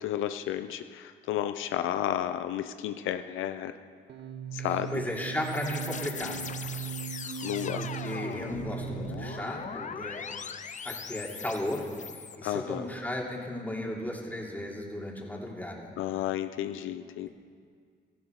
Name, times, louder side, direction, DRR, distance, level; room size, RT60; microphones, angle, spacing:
voice 1, 0.0-3.7 4.5-5.0 7.4-7.8 12.4-12.9 16.0-17.3, left 11 dB, 85° left, 9 dB, 0.6 m, -32 dB
sound 1, 4.1-9.8, right 10 dB, 60° right, 1.1 m, -39 dB
voice 2, 4.6-6.5 7.7-10.3 10.8-11.8 12.1-15.9, left 1 dB, 10° left, -2 dB, 3.0 m, -35 dB
sound 2, 4.7-12.4, left 6 dB, 40° left, 0.7 m, -40 dB
17.5 x 14.0 x 4.8 m, 2.1 s
cardioid pair, 90°, 20 cm